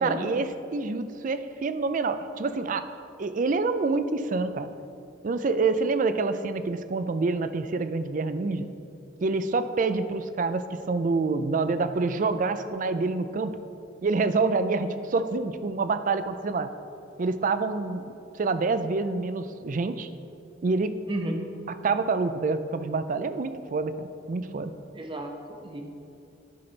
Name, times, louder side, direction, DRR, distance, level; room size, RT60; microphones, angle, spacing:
voice 1, 0.0-2.9 3.2-4.7 5.2-8.7 9.2-13.6 14.0-16.7 17.2-20.1 20.6-21.0 21.8-24.7, right 3 dB, 45° right, 11 dB, 0.4 m, -27 dB
voice 2, 24.9-25.8, right 1 dB, 25° right, 3 dB, 0.8 m, -32 dB
11.0 x 6.0 x 3.9 m, 2.7 s
head